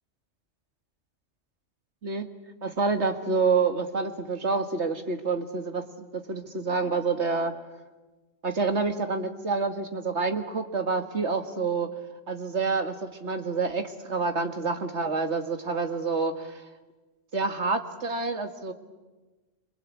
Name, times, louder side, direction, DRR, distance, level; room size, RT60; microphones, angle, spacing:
voice 1, 2.6-5.8 6.1-7.5 8.4-11.9 12.3-16.6 17.3-18.7, right 4 dB, 65° right, 6 dB, 2.3 m, -28 dB
27.0 x 25.5 x 8.5 m, 1.2 s
omnidirectional pair, 1.3 m